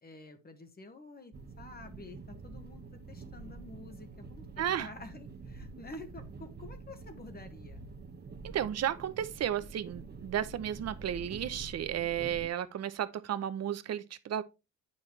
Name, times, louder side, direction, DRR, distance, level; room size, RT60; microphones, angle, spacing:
voice 1, 0.0-7.8, left 2 dB, 30° left, 1.5 m, -49 dB
sound 1, 1.3-12.5, right 4 dB, 35° right, 1.2 m, -47 dB
voice 2, 4.6-4.9 8.4-14.4, right 10 dB, 55° right, 0.9 m, -33 dB
8.7 x 5.8 x 3.3 m
cardioid pair, 90°, 30 cm